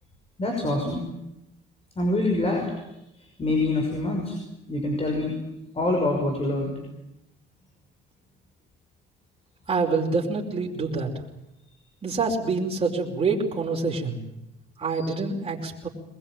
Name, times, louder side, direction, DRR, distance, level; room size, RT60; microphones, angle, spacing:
voice 1, 0.4-1.0 2.0-2.7 3.2-4.4 4.7-5.3 5.7-6.7 14.9-15.1, left 2 dB, 30° left, 2 dB, 5.9 m, -25 dB
voice 2, 9.7-11.1 12.0-14.2 14.8-15.9, right 4 dB, 25° right, -3 dB, 5.1 m, -26 dB
23.0 x 21.0 x 9.2 m, 0.89 s
cardioid pair, 100°, 21 cm